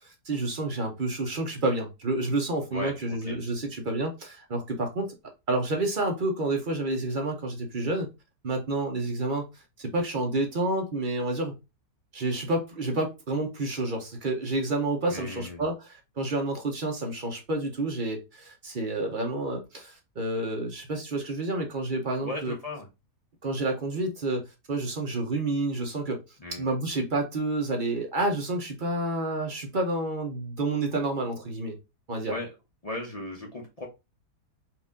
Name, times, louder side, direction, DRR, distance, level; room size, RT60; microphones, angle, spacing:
voice 1, 0.0-5.1 5.5-8.1 8.4-9.5 9.8-11.5 12.1-22.5 23.4-24.4 24.7-26.2 26.6-31.8 32.1-32.3, right 2 dB, 40° right, 0.7 m, -29 dB
voice 2, 2.7-3.4 15.1-15.7 22.2-22.9 26.4-26.7 32.3-32.5 32.8-33.9, left 2 dB, 30° left, 0.7 m, -36 dB
4.4 x 2.6 x 3.5 m
omnidirectional pair, 1.8 m